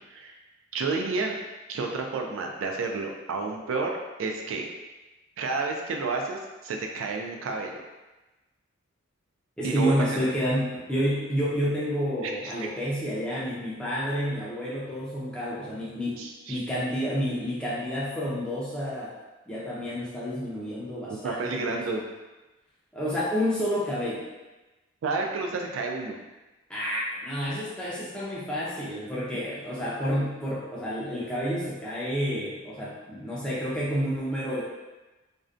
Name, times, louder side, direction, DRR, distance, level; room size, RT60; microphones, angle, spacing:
voice 1, 0.7-1.4 1.7-4.7 5.4-7.7 9.6-9.9 10.2-10.3 12.2-12.3 16.2-16.6 21.1-22.0 25.0-26.2, right 3 dB, 75° right, 2 dB, 0.3 m, -30 dB
voice 2, 9.6-16.2 16.5-19.1 19.5-21.8 22.9-24.3 26.7-34.6, equal, 5° left, -8 dB, 0.4 m, -29 dB
2.5 x 2.1 x 2.4 m, 1.1 s
head